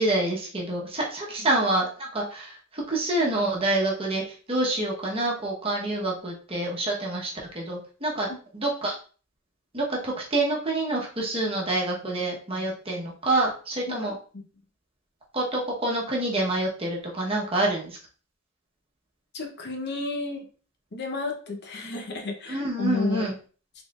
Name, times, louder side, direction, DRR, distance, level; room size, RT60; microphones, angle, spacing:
voice 1, 0.0-9.0 9.7-14.1 15.3-18.0 22.5-23.3, right 2 dB, 30° right, -2 dB, 1.0 m, -27 dB
voice 2, 19.3-20.4 20.9-23.2, left 3 dB, 55° left, 2 dB, 0.8 m, -31 dB
4.1 x 3.8 x 2.4 m, 0.39 s
head